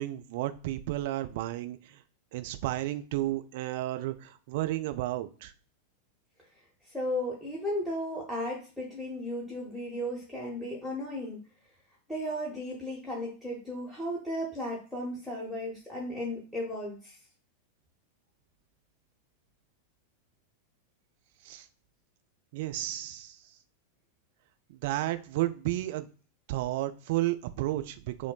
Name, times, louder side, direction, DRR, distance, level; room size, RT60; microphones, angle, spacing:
voice 1, 0.0-2.0 2.3-5.5 21.4-21.7 22.5-23.6 24.7-26.1 26.5-28.3, right 15 dB, 50° right, 10 dB, 0.4 m, -32 dB
voice 2, 6.8-11.4 12.1-17.2, left 1 dB, 5° left, -5 dB, 1.1 m, -35 dB
5.7 x 2.0 x 2.4 m, 0.38 s
figure-of-eight pair, 90°, 0 cm